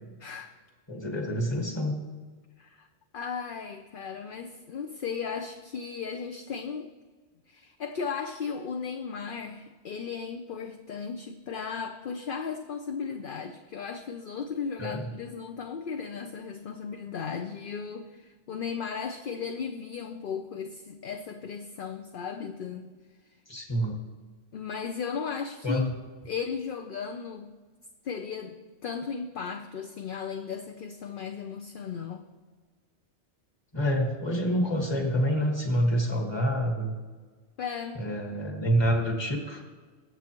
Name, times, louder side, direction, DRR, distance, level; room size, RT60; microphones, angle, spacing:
voice 1, 0.2-0.5 2.6-2.9 3.1-6.9 7.5-22.9 24.5-25.9 26.3-27.6 28.0-28.6 28.8-32.2 37.6-38.0, left 6 dB, 55° left, 6 dB, 0.8 m, -36 dB
voice 2, 0.9-2.0 14.8-15.1 23.5-24.0 25.6-25.9 33.7-36.9 38.0-39.6, equal, 25° left, 1 dB, 1.6 m, -27 dB
22.0 x 7.7 x 3.0 m, 1.4 s
omnidirectional pair, 1.1 m